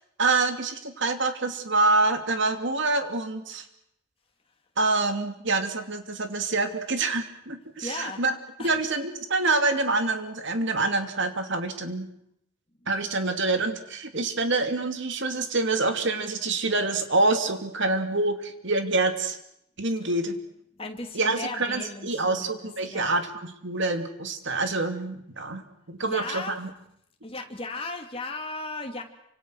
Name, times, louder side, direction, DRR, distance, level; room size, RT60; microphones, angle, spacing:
voice 1, 0.2-3.6 4.8-8.4 8.6-12.1 12.9-19.4 19.8-20.4 21.1-26.7, right 3 dB, 60° right, 7 dB, 2.7 m, -26 dB
voice 2, 7.8-8.2 8.6-8.7 20.8-23.2 26.0-26.6 27.2-29.0, left 3 dB, 25° left, 3 dB, 3.0 m, -36 dB
28.5 x 26.0 x 6.4 m, 0.76 s
head